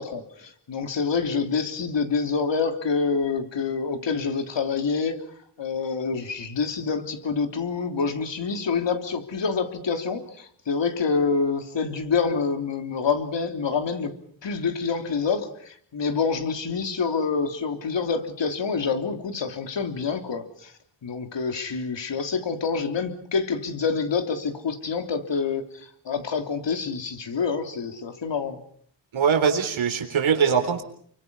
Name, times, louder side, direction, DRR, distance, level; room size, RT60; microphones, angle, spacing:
voice 1, 0.0-5.2 5.6-14.2 14.4-20.7 21.0-25.6 26.0-28.6, left 5 dB, 65° left, 6 dB, 3.4 m, -27 dB
voice 2, 29.1-30.8, right 6 dB, 85° right, 5 dB, 3.9 m, -22 dB
29.5 x 24.5 x 5.6 m, 0.63 s
wide cardioid pair, 100°, 46 cm